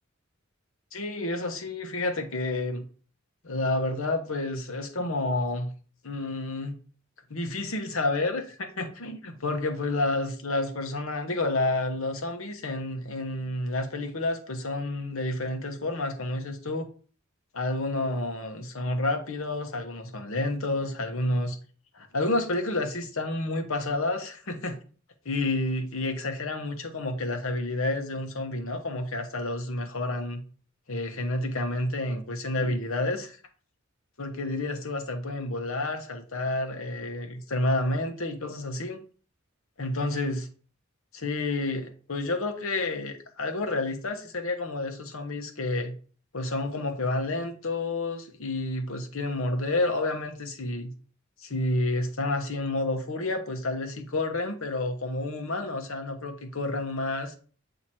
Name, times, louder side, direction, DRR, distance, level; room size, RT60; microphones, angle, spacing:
voice 1, 0.9-2.8 3.4-5.7 6.0-6.8 7.3-16.9 17.5-21.6 21.9-24.8 25.2-30.4 30.9-33.4 34.2-39.0 39.8-40.5 41.1-46.0 46.3-50.9 51.4-57.3, left 2 dB, 85° left, 5 dB, 1.1 m, -30 dB
7.6 x 2.9 x 4.3 m, 0.42 s
head